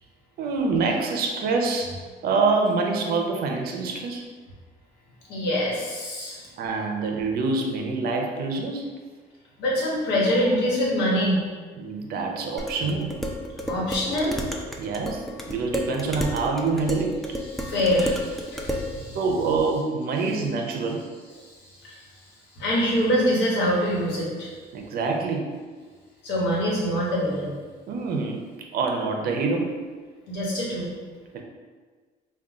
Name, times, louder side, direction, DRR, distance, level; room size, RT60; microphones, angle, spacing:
voice 1, 0.4-2.0 2.2-4.2 6.6-8.9 11.8-13.1 14.8-17.2 19.1-21.0 24.7-25.5 27.9-28.4 28.7-29.8 31.3-31.4, right 4 dB, 65° right, 2 dB, 0.6 m, -26 dB
voice 2, 5.3-6.4 9.6-11.4 13.7-14.4 17.5-19.2 21.8-22.0 22.5-24.5 26.2-27.6 30.3-30.9, equal, 85° left, -4 dB, 1.2 m, -24 dB
Dishes pots and pans, 12.6-18.9, equal, ahead, 0.4 m, -32 dB
3.7 x 2.3 x 3.6 m, 1.5 s
cardioid pair, 110°, 17 cm